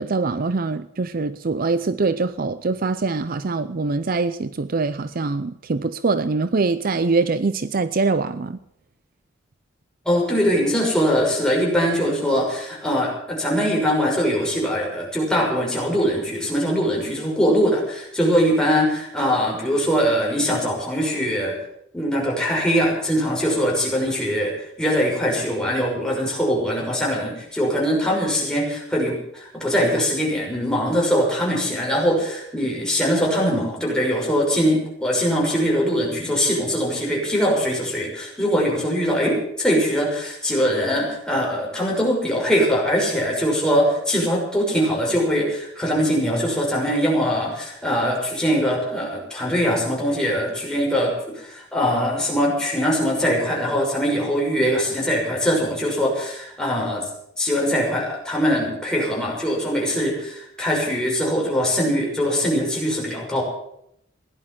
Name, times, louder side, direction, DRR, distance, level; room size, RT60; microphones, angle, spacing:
voice 1, 0.0-8.6, right 3 dB, 50° right, 0.6 m, -23 dB
voice 2, 10.0-21.6 21.9-57.0 57.4-63.4, equal, 5° left, 6.0 m, -22 dB
17.0 x 11.0 x 7.4 m
head